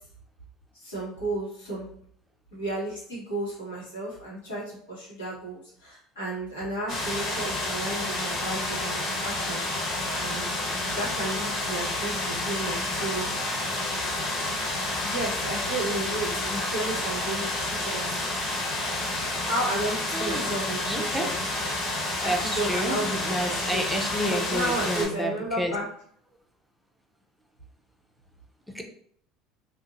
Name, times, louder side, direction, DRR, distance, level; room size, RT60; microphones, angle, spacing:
voice 1, 0.7-1.9 2.5-9.6 10.1-10.5 10.9-13.3 15.0-18.2 19.3-21.3 22.2-23.9 24.3-25.8, right 1 dB, 90° left, -6 dB, 1.3 m, -33 dB
sound 1, 6.9-25.1, left 2 dB, 50° left, 1.4 m, -30 dB
voice 2, 20.1-21.3 21.8-25.7 28.7-28.8, equal, ahead, 1 dB, 0.5 m, -31 dB
2.6 x 2.5 x 2.6 m, 0.63 s
hypercardioid pair, 75°, 0 cm